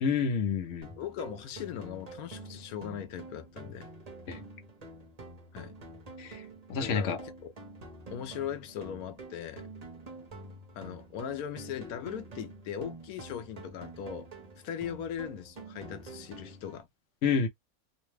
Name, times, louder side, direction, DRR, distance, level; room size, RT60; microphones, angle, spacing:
voice 1, 0.0-0.9 4.3-4.4 6.2-6.4 6.7-7.2 17.2-17.5, left 6 dB, 60° left, 1.0 m, -28 dB
sound 1, 0.8-16.8, right 2 dB, 35° right, 0.8 m, -47 dB
voice 2, 1.0-3.9 5.5-5.7 6.8-7.5 8.1-9.7 10.8-14.3 14.6-16.9, left 9 dB, 90° left, 1.1 m, -39 dB
2.9 x 2.2 x 3.1 m
omnidirectional pair, 1.5 m